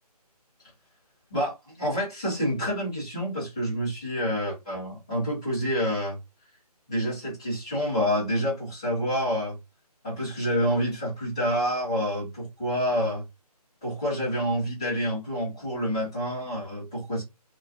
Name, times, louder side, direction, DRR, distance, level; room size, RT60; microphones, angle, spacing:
voice 1, 1.3-6.2 6.9-9.6 10.0-13.2 13.8-17.2, equal, 10° left, 0.7 m, -28 dB
2.9 x 2.4 x 3.5 m
hypercardioid pair, 175°, 20 cm